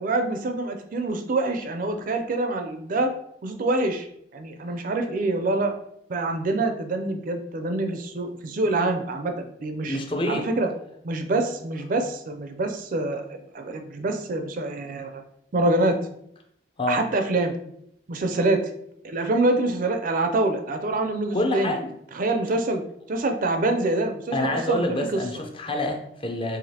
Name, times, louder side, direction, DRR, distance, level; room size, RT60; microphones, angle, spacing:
voice 1, 0.0-3.1 3.4-4.1 4.3-5.7 6.1-10.0 10.3-10.7 11.0-13.2 13.5-15.2 15.5-16.0 16.9-17.5 18.1-18.6 19.0-21.7 22.1-22.8 23.1-25.2, right 2 dB, 45° right, 6 dB, 0.4 m, -25 dB
voice 2, 9.9-10.5 16.8-17.0 21.3-21.9 24.3-26.6, left 1 dB, 30° left, 3 dB, 0.5 m, -27 dB
4.9 x 2.8 x 2.8 m, 0.73 s
head